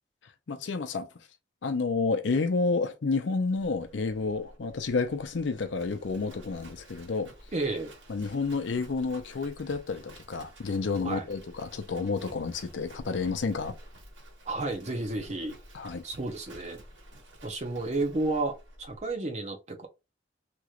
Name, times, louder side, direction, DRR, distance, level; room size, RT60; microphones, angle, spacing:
voice 1, 0.5-1.1 1.6-7.3 8.1-13.8 15.7-16.0, left 4 dB, 80° left, 0.5 m, -30 dB
Livestock farm animals working animals, 3.6-19.1, right 1 dB, 85° right, 1.5 m, -51 dB
voice 2, 7.5-7.9 11.0-11.3 14.5-15.5 16.0-16.8 17.4-19.9, right 2 dB, 40° right, 0.7 m, -32 dB
3.0 x 2.9 x 2.4 m
head